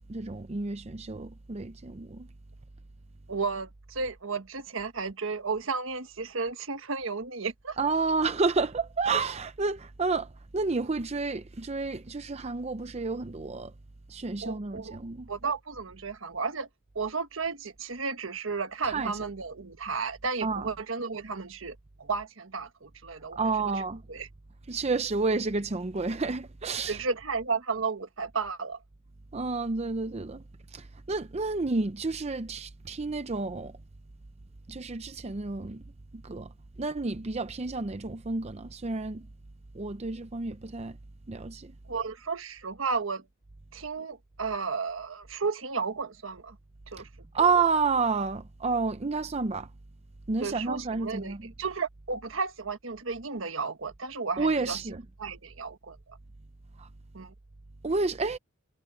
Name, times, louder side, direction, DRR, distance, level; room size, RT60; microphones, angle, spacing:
voice 1, 0.1-2.3 7.8-13.7 14.1-15.3 18.8-19.1 20.4-20.7 23.4-24.0 24.7-27.0 29.3-30.4 30.7-33.7 34.7-35.8 36.2-36.5 36.8-39.3 39.7-41.0 41.3-41.7 47.3-49.7 50.3-51.5 54.4-55.0 56.8-56.9 57.8-58.4, right 4 dB, 30° right, 0.6 m, -30 dB
voice 2, 3.3-7.8 14.4-15.0 15.3-16.7 16.9-23.4 23.6-23.7 24.1-24.3 26.9-28.8 41.9-43.3 43.7-46.6 46.9-47.1 47.3-47.5 50.4-54.8 55.2-56.2 57.1-57.3, right 4 dB, 70° right, 1.4 m, -33 dB
head